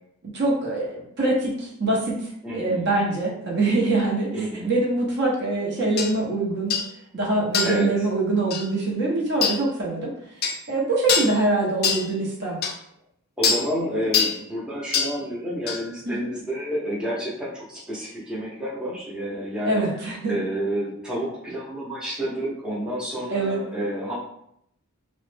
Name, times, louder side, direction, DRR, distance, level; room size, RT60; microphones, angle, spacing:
voice 1, 0.3-6.7 7.1-10.1 10.7-12.6 16.1-16.3 19.6-20.3 23.3-23.6, right 2 dB, 50° right, -3 dB, 0.7 m, -24 dB
voice 2, 2.4-2.9 4.3-4.7 7.6-7.9 13.4-19.8 20.3-24.1, equal, 5° right, -8 dB, 0.6 m, -29 dB
sound 1, 6.0-6.1 6.7-6.9 7.5-7.8 8.5-8.7 9.4-9.6 10.4-10.6 11.1-11.4 11.8-12.1 12.6-12.7 13.4-13.7 14.1-14.4 14.9-15.2 15.7-15.8, left 6 dB, 45° left, 0.3 m, -23 dB
3.0 x 2.1 x 3.2 m, 0.73 s
head